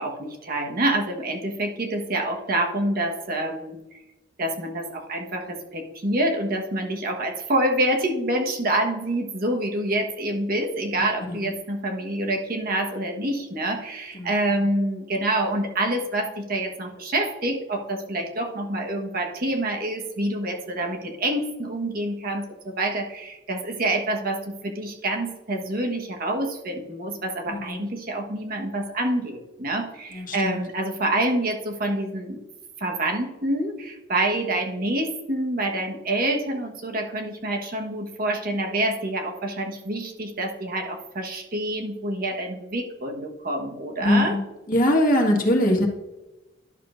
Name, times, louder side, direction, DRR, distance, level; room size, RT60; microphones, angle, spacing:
voice 1, 0.0-3.8 4.4-32.4 32.8-44.4, right 1 dB, 55° right, 2 dB, 1.3 m, -27 dB
voice 2, 30.1-30.6 44.0-44.4 44.7-45.9, left 1 dB, 50° left, 1 dB, 1.7 m, -21 dB
11.0 x 6.8 x 2.6 m, 1.0 s
head